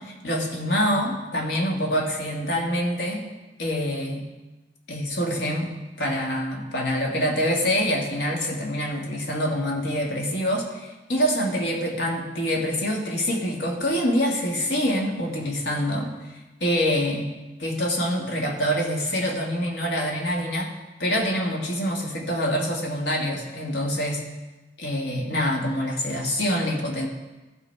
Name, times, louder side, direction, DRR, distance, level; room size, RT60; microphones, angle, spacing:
voice 1, 0.0-3.3 3.6-4.3 4.9-17.3 17.6-20.7 21.0-24.2 24.8-27.1, equal, 90° left, 0 dB, 2.0 m, -26 dB
15.0 x 6.0 x 4.7 m, 1.1 s
head